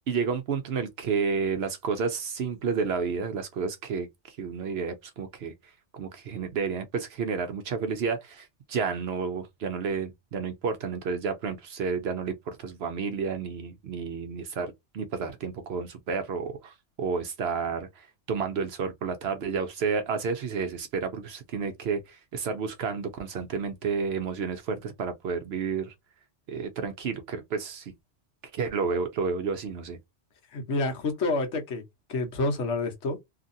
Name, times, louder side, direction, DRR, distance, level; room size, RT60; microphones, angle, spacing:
voice 1, 0.1-5.5 5.9-25.9 26.5-27.9 28.5-30.0, right 5 dB, 65° right, 0.8 m, -31 dB
voice 2, 30.5-31.8 32.1-33.2, left 2 dB, 75° left, 1.2 m, -28 dB
2.8 x 2.5 x 2.6 m
omnidirectional pair, 1.2 m